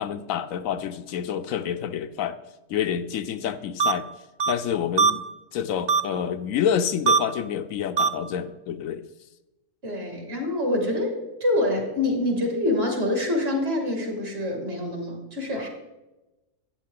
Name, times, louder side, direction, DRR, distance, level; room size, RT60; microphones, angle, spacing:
voice 1, 0.0-2.4 2.7-4.1 4.5-5.2 5.5-9.0, left 8 dB, 75° left, 11 dB, 1.0 m, -28 dB
sound 1, 3.8-3.9 4.4-4.5 5.0-5.1 5.9-6.0 7.1-7.2 8.0-8.1, right 5 dB, 75° right, 0.4 m, -19 dB
voice 2, 9.8-15.7, left 1 dB, 45° right, 1 dB, 2.6 m, -26 dB
13.5 x 9.1 x 3.7 m, 1.0 s
omnidirectional pair, 1.5 m